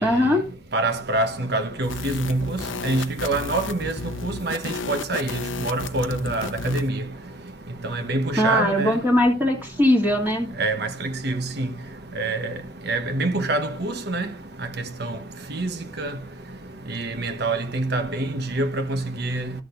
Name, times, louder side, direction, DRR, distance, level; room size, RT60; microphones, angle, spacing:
voice 1, 0.0-0.5 8.4-10.5, left 1 dB, 10° right, 1.8 m, -20 dB
voice 2, 0.7-4.0 4.2-7.0 7.9-8.9 10.6-11.7 12.2-12.5 12.9-14.3 15.0-15.1 15.5-15.7 16.0-16.1 16.9-19.5, right 2 dB, 55° right, 1.1 m, -26 dB
sound 1, 1.8-6.9, left 4 dB, 85° left, 0.7 m, -33 dB
13.5 x 6.3 x 2.6 m
head